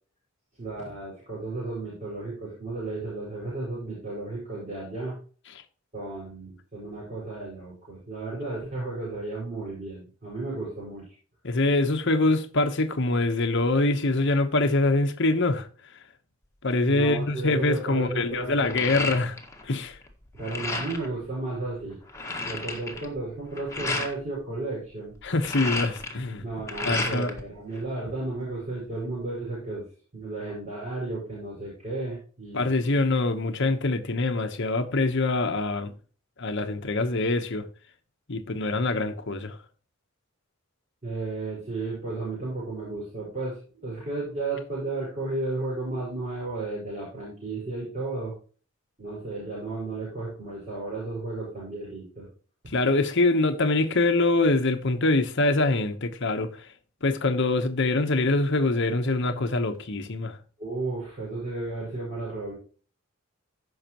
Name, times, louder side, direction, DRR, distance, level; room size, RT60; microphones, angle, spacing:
voice 1, 0.6-5.2 5.9-11.0 16.9-19.0 20.3-22.0 22.4-25.1 26.4-29.8 30.1-32.8 41.0-48.3 49.0-52.3 60.6-62.5, right 2 dB, 35° right, 5.4 m, -33 dB
voice 2, 11.4-15.7 16.6-19.4 19.6-20.0 25.2-26.4 26.8-27.3 32.5-35.9 36.4-37.7 38.3-39.6 52.7-56.7 57.0-60.4, left 2 dB, 60° left, 1.1 m, -24 dB
sound 1, 17.2-17.5 17.9-19.7 19.9-21.1 21.6-21.7 21.9-24.1 25.2-27.4 27.8-28.6, left 3 dB, 15° left, 1.8 m, -33 dB
15.5 x 5.8 x 3.0 m
head